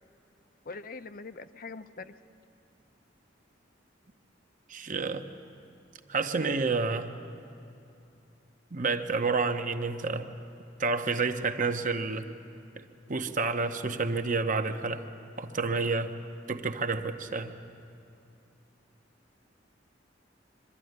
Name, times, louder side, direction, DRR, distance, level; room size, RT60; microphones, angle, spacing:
voice 1, 0.6-2.1, left 4 dB, 50° left, 11 dB, 0.7 m, -42 dB
voice 2, 4.7-5.3 6.1-7.1 8.7-10.3 10.8-12.3 12.8-12.9 13.1-15.1 15.4-16.1 16.5-17.5, right 4 dB, 45° right, 7 dB, 0.9 m, -29 dB
23.0 x 13.0 x 9.5 m, 2.7 s
head